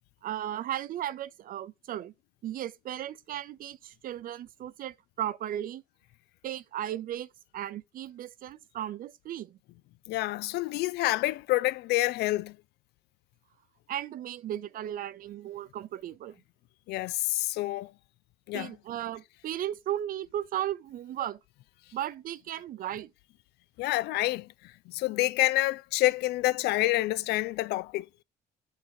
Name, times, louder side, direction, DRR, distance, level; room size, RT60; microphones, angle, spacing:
voice 1, 0.2-2.1 2.4-5.8 6.4-7.3 7.5-9.6 13.9-16.4 18.5-21.4 21.9-23.1, right 11 dB, 55° right, 0.6 m, -35 dB
voice 2, 10.1-12.6 16.9-17.9 18.5-18.7 23.8-24.5 24.9-28.1, left 17 dB, 75° left, 0.4 m, -28 dB
6.5 x 3.9 x 4.7 m
cardioid pair, 110°, 17 cm